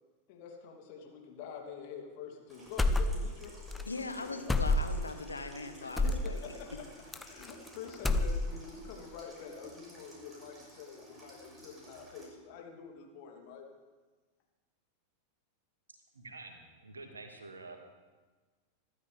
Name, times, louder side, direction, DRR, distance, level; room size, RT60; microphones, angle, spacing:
voice 1, 0.3-3.5 5.8-6.7 7.2-13.7, left 7 dB, 45° left, 1 dB, 2.9 m, -47 dB
Water tap faucet / Sink (filling or washing), 2.5-12.3, equal, 15° right, 6.4 m, -53 dB
sound 1, 2.8-3.4 3.7-3.8 4.5-5.1 6.0-6.3 7.1-7.7 7.9-8.7, left 2 dB, 10° left, 0.8 m, -28 dB
voice 2, 3.9-6.4, left 3 dB, 80° left, 7 dB, 1.2 m, -40 dB
voice 3, 16.1-17.8, right 3 dB, 75° right, 4 dB, 2.1 m, -48 dB
25.5 x 13.0 x 3.5 m, 1.3 s
figure-of-eight pair, 90°, 0 cm